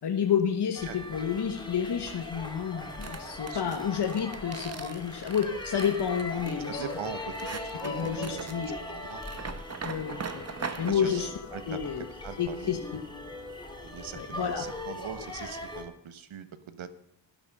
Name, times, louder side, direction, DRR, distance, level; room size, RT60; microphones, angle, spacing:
voice 1, 0.0-6.8 7.8-8.8 9.8-10.4 10.8-11.3 11.7-12.1 12.4-13.0 14.1-14.6, left 8 dB, 60° left, 3 dB, 1.3 m, -30 dB
sound 1, 0.7-15.8, left 2 dB, 10° left, 2.5 m, -40 dB
sound 2, 3.0-10.9, right 5 dB, 35° right, 1.0 m, -41 dB
voice 2, 3.5-3.8 6.6-9.2 10.8-12.8 13.8-16.9, right 7 dB, 85° right, 12 dB, 1.4 m, -42 dB
12.5 x 12.5 x 5.5 m, 0.74 s
wide cardioid pair, 180°, 46 cm